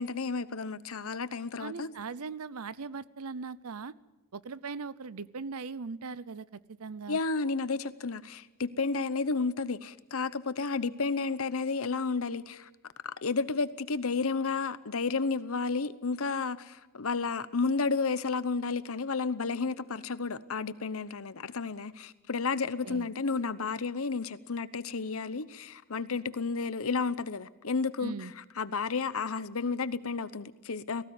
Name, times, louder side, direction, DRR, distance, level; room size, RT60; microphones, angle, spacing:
voice 1, 0.0-1.9 7.1-12.7 13.0-28.3 28.6-31.0, left 4 dB, 70° left, 0.9 m, -32 dB
voice 2, 1.6-3.9 4.3-7.2 22.8-23.1 28.0-28.3, right 4 dB, 90° right, 0.7 m, -39 dB
18.5 x 16.0 x 9.6 m
head